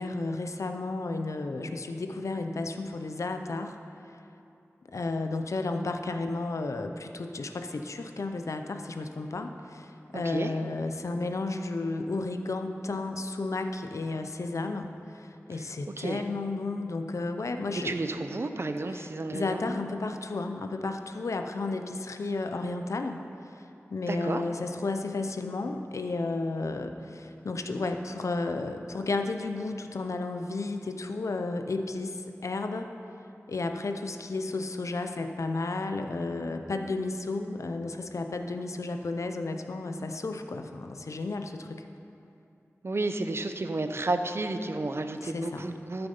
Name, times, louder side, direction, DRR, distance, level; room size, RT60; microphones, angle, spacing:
voice 1, 0.0-3.8 4.9-18.0 18.9-23.2 23.5-23.6 23.9-32.9 33.5-41.8 45.2-45.6, left 3 dB, 85° left, 6 dB, 0.6 m, -33 dB
voice 2, 10.1-10.5 15.5-15.6 16.0-16.2 17.7-19.7 24.1-24.4 42.8-46.1, right 2 dB, 55° right, 8 dB, 0.6 m, -32 dB
12.5 x 6.8 x 5.4 m, 2.7 s
wide cardioid pair, 55°, 5 cm